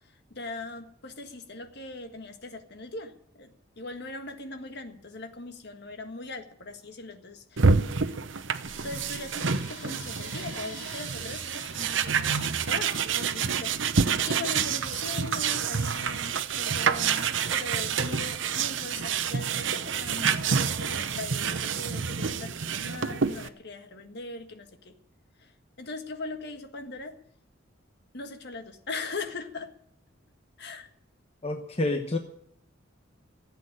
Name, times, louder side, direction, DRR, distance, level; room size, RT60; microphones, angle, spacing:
voice 1, 0.0-7.7 8.0-8.2 8.8-24.9 25.4-25.5 25.8-27.2 28.1-29.7 30.6-30.9, left 3 dB, 60° left, 7 dB, 1.7 m, -40 dB
sound 1, 7.6-23.5, right 6 dB, 70° right, 0.9 m, -28 dB
sound 2, 8.6-13.5, left 3 dB, 80° left, 5.6 m, -49 dB
voice 2, 31.4-32.2, left 2 dB, 30° left, 5 dB, 1.1 m, -28 dB
15.0 x 8.3 x 10.0 m, 0.69 s
head